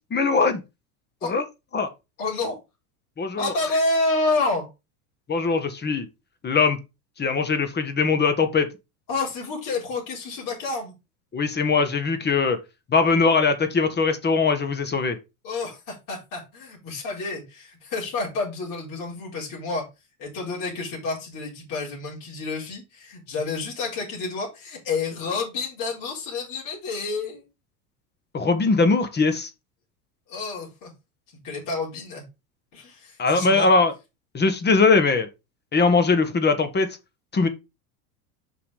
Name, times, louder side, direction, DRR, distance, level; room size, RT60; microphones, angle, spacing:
voice 1, 0.1-0.6 1.2-1.4 1.7-1.9 3.2-3.5 5.3-6.1 6.4-6.8 7.2-8.7 11.3-12.6 12.9-15.2 28.3-29.5 33.2-33.9 34.3-35.3 35.7-36.9 37.3-37.5, left 4 dB, 25° left, 1.4 m, -21 dB
voice 2, 2.2-2.6 3.4-4.7 9.1-10.9 15.4-19.8 20.2-27.5 30.3-30.9 31.4-32.2 32.7-33.7, left 3 dB, 45° left, 4.5 m, -29 dB
6.1 x 5.6 x 4.9 m
hypercardioid pair, 100°, 44 cm